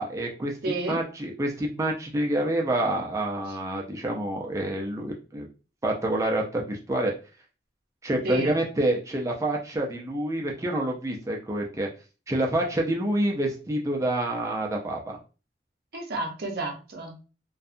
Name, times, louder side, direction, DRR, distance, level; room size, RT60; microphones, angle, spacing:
voice 1, 0.0-5.5 5.8-7.1 8.0-11.9 12.3-15.2, right 1 dB, 15° right, 0 dB, 0.4 m, -27 dB
voice 2, 0.6-1.0 8.2-8.5 15.9-17.2, right 2 dB, 60° right, 2 dB, 0.7 m, -31 dB
2.7 x 2.2 x 2.4 m, 0.34 s
head